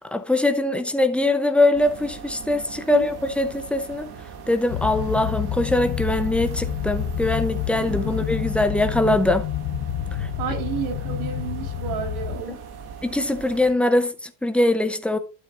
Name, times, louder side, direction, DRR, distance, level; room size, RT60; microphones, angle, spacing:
voice 1, 0.0-4.1 4.5-9.5 10.2-10.3 12.5-12.6 13.0-15.2, left 1 dB, 5° left, 0.6 m, -22 dB
sound 1, 1.7-13.7, right 6 dB, 50° right, 2.3 m, -41 dB
sound 2, 4.7-12.4, left 11 dB, 65° left, 1.1 m, -28 dB
voice 2, 10.4-12.6, right 7 dB, 80° right, 4.0 m, -31 dB
12.0 x 8.0 x 2.5 m
cardioid pair, 170°, 48 cm